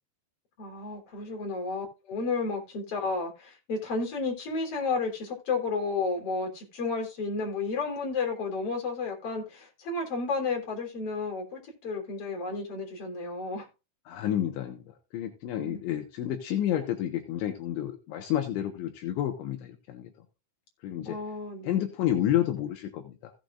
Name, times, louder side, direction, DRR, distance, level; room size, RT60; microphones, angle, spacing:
voice 1, 0.6-13.7 15.6-15.8 21.0-21.8, left 4 dB, 35° left, 4.0 m, -32 dB
voice 2, 14.1-20.1 20.8-21.2 21.6-23.3, left 11 dB, 75° left, 3.6 m, -30 dB
16.5 x 7.9 x 2.5 m
omnidirectional pair, 5.4 m